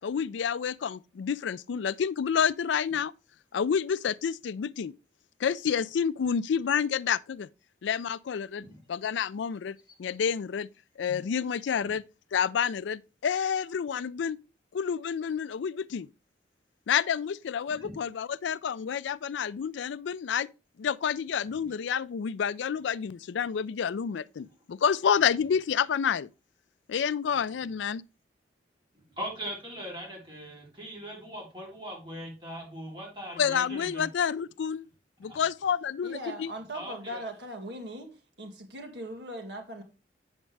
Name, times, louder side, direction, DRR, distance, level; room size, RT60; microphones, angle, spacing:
voice 1, 0.0-3.1 3.5-4.9 5.4-7.5 7.8-10.7 11.0-12.0 12.3-14.4 14.7-16.1 16.9-20.5 20.8-26.3 26.9-28.0 33.4-34.9 35.2-36.5, left 7 dB, 75° left, 0.4 m, -29 dB
voice 2, 28.9-34.1 35.2-35.4 36.7-37.2, equal, 25° right, 3.3 m, -40 dB
voice 3, 36.0-38.1 38.4-39.8, right 1 dB, 65° right, 1.9 m, -39 dB
8.0 x 7.4 x 3.2 m
head